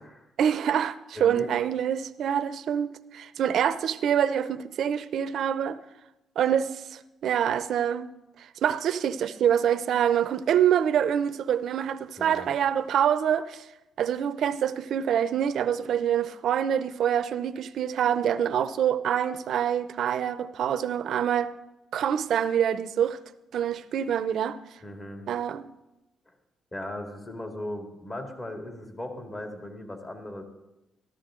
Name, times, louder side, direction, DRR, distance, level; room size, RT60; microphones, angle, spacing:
voice 1, 0.4-5.8 6.4-8.1 8.4-13.6 14.0-21.6 21.9-23.2 23.5-24.6 25.3-25.7, right 9 dB, 70° right, 0.6 m, -26 dB
voice 2, 1.1-1.5 12.2-12.5 24.8-25.3 26.7-30.4, left 1 dB, 30° left, 2.4 m, -38 dB
14.0 x 13.0 x 3.8 m
cardioid pair, 90°, 0 cm